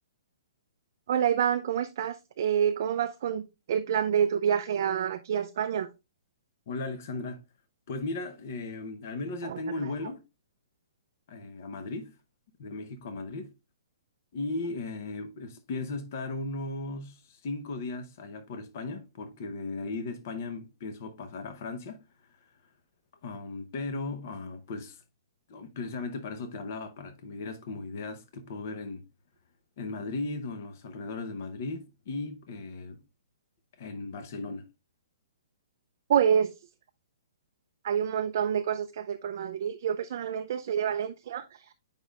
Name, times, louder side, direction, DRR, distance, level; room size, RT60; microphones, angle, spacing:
voice 1, 1.1-5.9 9.4-9.6 36.1-36.5 37.8-41.4, right 8 dB, 35° right, 0.4 m, -27 dB
voice 2, 6.7-7.4 7.9-10.2 11.3-12.2 12.6-13.5 14.3-22.0 23.2-25.0 25.5-29.0 29.8-33.0 33.8-34.7, left 3 dB, 35° left, 0.7 m, -36 dB
8.3 x 5.2 x 2.3 m
hypercardioid pair, 180°, 2 cm